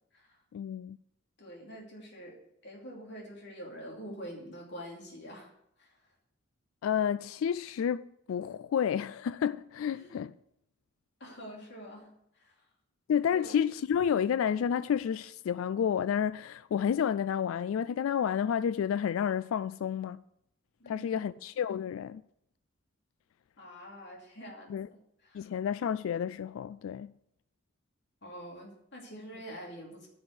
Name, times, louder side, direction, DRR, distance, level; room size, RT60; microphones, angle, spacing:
voice 1, 0.5-1.0 6.8-10.3 13.1-20.2 20.9-22.2 24.7-24.9 25.3-27.1, left 8 dB, 85° left, 0.3 m, -30 dB
voice 2, 1.4-2.4 2.6-5.5 5.8-6.1 9.9-10.2 11.2-12.7 13.3-13.6 20.8-21.4 23.6-25.5 28.2-30.1, equal, 60° left, 2.7 m, -46 dB
10.5 x 5.6 x 8.1 m
head